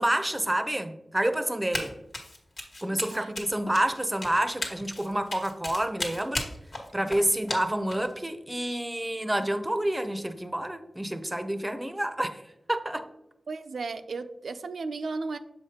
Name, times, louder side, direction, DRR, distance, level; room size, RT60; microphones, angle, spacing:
voice 1, 0.0-1.9 2.8-6.5 6.9-12.4 12.7-13.1, right 1 dB, 15° right, 9 dB, 0.6 m, -28 dB
Run, 1.7-8.1, left 1 dB, 60° left, 1.4 m, -35 dB
voice 2, 2.9-3.3 13.5-15.4, right 3 dB, 85° right, 9 dB, 0.4 m, -35 dB
7.0 x 4.9 x 2.8 m, 0.85 s
wide cardioid pair, 80°, 0 cm